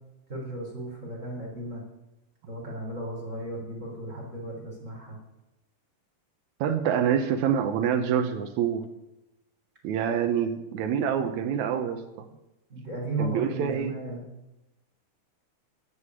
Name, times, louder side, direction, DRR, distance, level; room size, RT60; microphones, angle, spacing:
voice 1, 0.3-1.8 2.5-5.2 12.7-14.2, right 2 dB, 20° right, -2 dB, 3.6 m, -35 dB
voice 2, 6.6-8.8 9.8-12.0 13.2-14.0, right 8 dB, 85° right, 7 dB, 1.6 m, -26 dB
9.9 x 8.3 x 9.7 m, 0.94 s
omnidirectional pair, 4.5 m